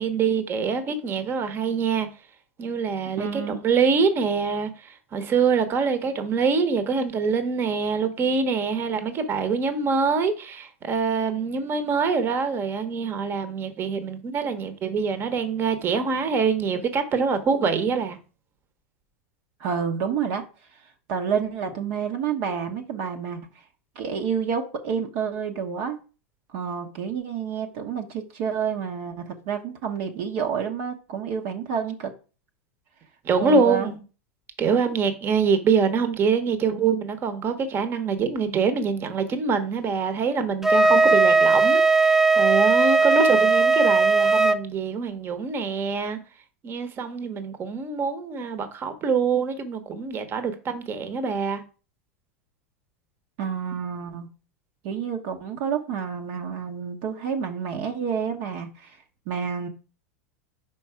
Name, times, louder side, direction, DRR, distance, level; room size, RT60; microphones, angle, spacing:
voice 1, 0.0-2.1 2.6-18.2 33.2-34.0 34.6-46.2 46.6-51.6, right 5 dB, 35° right, 1.1 m, -25 dB
voice 2, 3.2-3.7 19.6-20.5 21.1-23.4 23.9-26.0 26.5-32.1 33.4-33.9 53.4-54.3 54.8-59.0 59.3-59.7, right 7 dB, 55° right, 1.0 m, -29 dB
Wind instrument woodwind instrument, 40.6-44.6, right 3 dB, 5° right, 0.5 m, -18 dB
5.2 x 4.5 x 4.8 m
hypercardioid pair, 90°, 7 cm